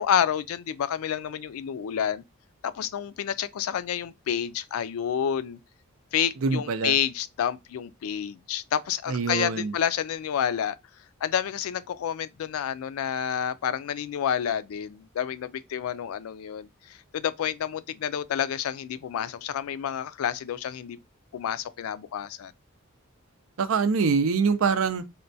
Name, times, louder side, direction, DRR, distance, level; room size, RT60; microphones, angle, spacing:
voice 1, 0.0-2.2 2.6-5.6 6.1-10.8 11.2-21.0 21.3-22.5, left 9 dB, 85° left, 0.3 m, -29 dB
voice 2, 6.4-7.0 9.1-9.7 23.6-25.0, right 5 dB, 70° right, 0.5 m, -24 dB
4.3 x 2.2 x 2.6 m
head